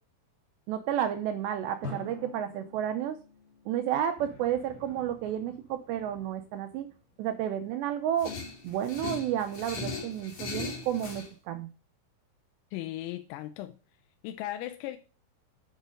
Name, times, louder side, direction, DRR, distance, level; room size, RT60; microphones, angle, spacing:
voice 1, 0.7-3.2 3.7-6.9 7.2-8.3 8.6-11.7, right 10 dB, 80° right, 2.5 m, -31 dB
Drum, 1.8-4.7, left 2 dB, 20° left, 2.0 m, -45 dB
sound 1, 4.2-7.2, left 3 dB, 60° left, 4.3 m, -55 dB
sound 2, 8.2-11.3, left 3 dB, 45° left, 2.6 m, -38 dB
voice 2, 12.7-13.8 14.2-15.0, left 14 dB, 85° left, 3.4 m, -37 dB
9.3 x 6.3 x 5.2 m
omnidirectional pair, 5.9 m